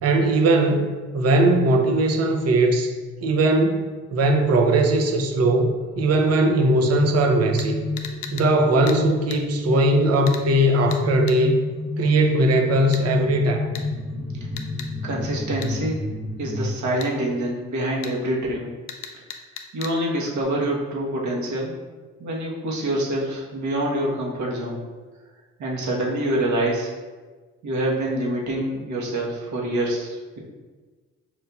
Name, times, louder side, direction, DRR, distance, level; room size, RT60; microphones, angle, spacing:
voice 1, 0.0-2.9 3.2-7.8 8.3-11.6 12.0-13.7, right 2 dB, 55° right, 4 dB, 0.6 m, -19 dB
sound 1, 3.9-16.7, left 1 dB, 15° right, 1.2 m, -30 dB
sound 2, 7.6-7.7 8.0-8.5 8.9-9.0 9.3-9.4 10.3-10.5 10.9-11.0 11.3-11.4 12.9-13.1 13.8-13.9 14.6-14.9 15.6-15.7 17.0-17.1 18.0-18.2 18.9-20.0 20.4-20.5, left 8 dB, 90° left, 0.5 m, -36 dB
voice 2, 15.0-16.0 16.4-18.7 19.7-21.7 22.2-24.8 25.6-26.9 27.6-30.4, right 1 dB, 70° right, -3 dB, 1.1 m, -26 dB
5.6 x 2.7 x 2.3 m, 1.4 s
cardioid pair, 90°, 30 cm